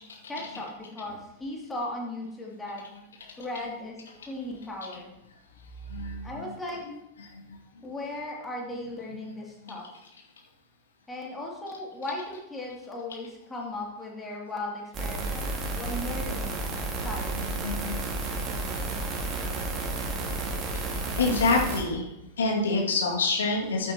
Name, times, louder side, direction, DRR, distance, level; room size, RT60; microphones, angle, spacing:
voice 1, 0.3-2.8 3.4-5.1 6.2-6.8 7.8-9.8 11.1-16.6 17.0-17.5, left 2 dB, 10° left, -3 dB, 2.7 m, -37 dB
voice 2, 5.9-6.2 17.6-18.0 21.2-22.0 22.4-23.9, left 3 dB, 65° left, -1 dB, 2.2 m, -26 dB
sound 1, 14.9-21.8, right 2 dB, 30° right, 2.0 m, -31 dB
15.0 x 8.5 x 3.0 m, 0.89 s
figure-of-eight pair, 90°, 0 cm